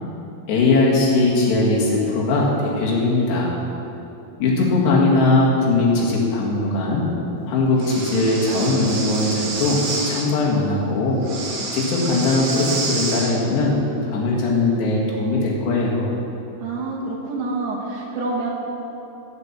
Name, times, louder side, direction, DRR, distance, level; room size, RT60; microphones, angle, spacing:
voice 1, 0.5-3.6 4.4-7.1 7.5-9.8 10.1-11.2 11.7-13.8 14.0-16.2, left 2 dB, 85° left, -3 dB, 4.0 m, -20 dB
Breathing, 7.8-10.3 11.2-13.3, right 3 dB, 55° right, 2.0 m, -28 dB
voice 2, 16.6-18.5, right 3 dB, 75° right, -2 dB, 3.3 m, -27 dB
15.5 x 6.1 x 7.2 m, 3.0 s
omnidirectional pair, 4.7 m